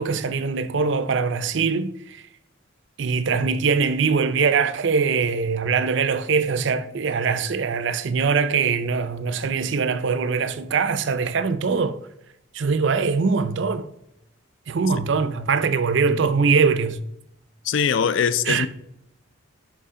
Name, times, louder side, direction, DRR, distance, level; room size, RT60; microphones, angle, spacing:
voice 1, 0.0-2.2 3.0-12.0 12.5-13.9 14.7-17.0 18.4-18.7, right 5 dB, 60° right, 0.4 m, -22 dB
voice 2, 17.7-18.7, left 7 dB, 65° left, 0.4 m, -21 dB
6.9 x 5.7 x 3.7 m
head